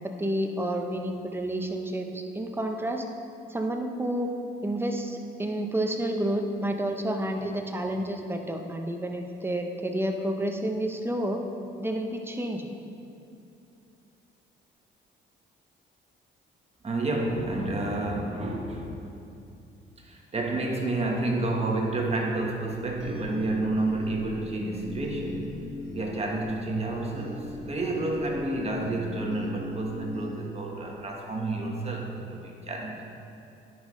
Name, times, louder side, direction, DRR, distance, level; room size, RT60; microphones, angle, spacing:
voice 1, 0.0-3.0 3.5-4.3 4.6-11.4 11.8-12.7, right 1 dB, 10° right, 3 dB, 0.7 m, -30 dB
voice 2, 16.8-19.0 20.0-25.5 25.9-33.0, right 2 dB, 30° right, 0 dB, 1.3 m, -30 dB
sound 1, 22.5-31.2, left 2 dB, 65° right, 1.8 m, -40 dB
10.0 x 5.3 x 3.2 m, 2.7 s
cardioid pair, 90°, 20 cm